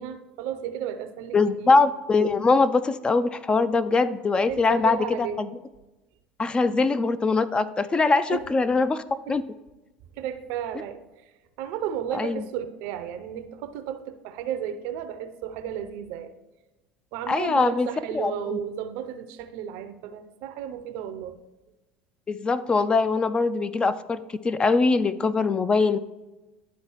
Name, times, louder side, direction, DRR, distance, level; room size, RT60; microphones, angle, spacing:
voice 1, 0.0-1.8 4.5-5.4 8.3-8.5 9.3-9.4 10.1-11.0 11.6-16.4 17.1-21.4, right 9 dB, 65° right, 10 dB, 0.5 m, -33 dB
voice 2, 1.3-5.5 6.4-9.0 9.3-9.4 12.1-12.4 17.3-17.9 18.1-18.6 22.3-24.2 24.4-26.0, left 4 dB, 25° left, 13 dB, 0.3 m, -22 dB
11.0 x 4.0 x 3.0 m, 1.1 s
hypercardioid pair, 70°, 4 cm